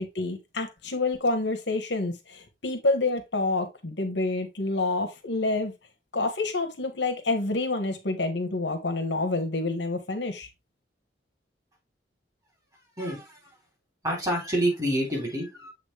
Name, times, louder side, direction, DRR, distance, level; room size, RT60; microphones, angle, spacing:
voice 1, 0.0-5.7 6.1-10.5, left 2 dB, 85° left, 1.5 m, -28 dB
voice 2, 13.0-13.4 14.0-15.7, right 1 dB, 20° right, 3.4 m, -27 dB
7.6 x 4.1 x 3.3 m
head